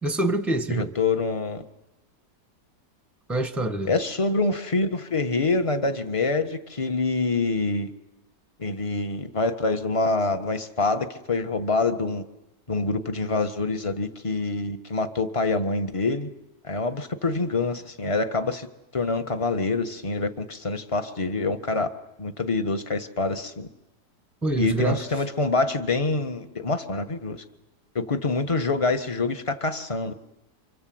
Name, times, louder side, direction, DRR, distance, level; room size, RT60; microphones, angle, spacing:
voice 1, 0.0-0.9 3.3-3.9 24.4-25.2, right 2 dB, ahead, 7 dB, 1.3 m, -26 dB
voice 2, 0.7-1.6 3.9-7.9 8.6-12.2 12.7-16.3 16.6-18.7 18.9-23.7 24.6-27.4 27.9-30.1, left 3 dB, 20° left, 7 dB, 1.4 m, -26 dB
28.5 x 26.0 x 7.9 m, 0.95 s
omnidirectional pair, 1.8 m